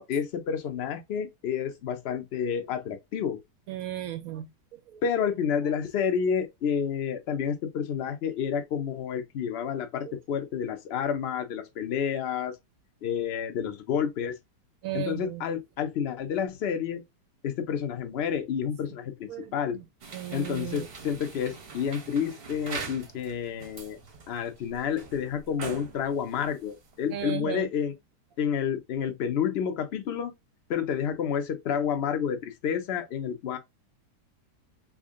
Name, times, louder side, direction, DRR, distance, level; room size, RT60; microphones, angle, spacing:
voice 1, 0.0-3.4 5.0-12.6 13.0-14.4 14.9-17.0 17.4-19.8 20.3-24.0 24.3-27.9 28.4-30.3 30.7-33.6, left 7 dB, 65° left, 0.6 m, -30 dB
voice 2, 3.7-5.3 10.0-10.1 14.8-15.4 19.3-19.8 20.1-20.9 27.1-27.7, right 12 dB, 70° right, 0.9 m, -36 dB
sound 1, 20.0-27.2, right 4 dB, 50° right, 0.8 m, -43 dB
3.5 x 2.1 x 3.5 m
omnidirectional pair, 1.8 m